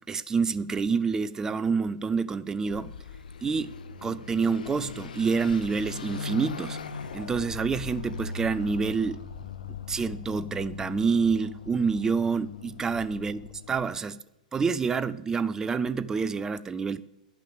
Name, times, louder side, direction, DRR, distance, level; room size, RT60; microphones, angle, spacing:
voice 1, 0.1-2.9 3.4-3.7 4.0-6.8 7.1-9.2 9.9-13.4 13.7-14.2 14.5-17.0, right 5 dB, 15° right, 0.5 m, -27 dB
Car passing by / Accelerating revving vroom, 2.7-13.9, left 5 dB, 80° left, 0.8 m, -39 dB
10.5 x 5.9 x 8.0 m
hypercardioid pair, 125°, 4 cm